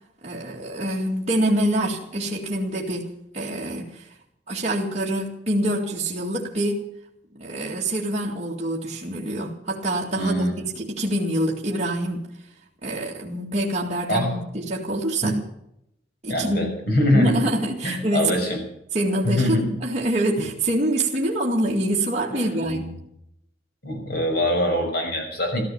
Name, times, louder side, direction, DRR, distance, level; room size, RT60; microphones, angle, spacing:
voice 1, 0.2-4.1 4.5-6.8 7.3-12.2 12.8-15.4 16.2-16.8 17.1-18.5 18.9-22.8, right 1 dB, 40° right, -3 dB, 2.2 m, -25 dB
voice 2, 10.2-10.5 14.1-14.4 15.2-15.3 16.3-17.5 17.8-18.6 19.2-19.7 20.4-20.5 22.3-22.9 23.8-25.6, left 1 dB, 60° left, 3 dB, 6.2 m, -23 dB
15.0 x 14.0 x 7.0 m, 0.79 s
head